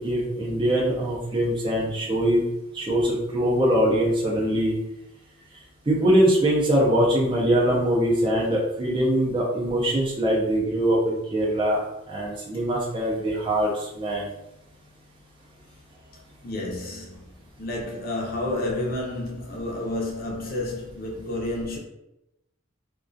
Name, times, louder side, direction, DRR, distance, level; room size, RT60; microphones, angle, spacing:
voice 1, 0.0-2.4 2.7-4.7 5.9-11.8 12.1-14.3, right 1 dB, 25° right, 0.4 m, -22 dB
voice 2, 16.4-17.3 17.6-21.8, left 1 dB, 50° left, 0.6 m, -30 dB
2.3 x 2.2 x 2.5 m
head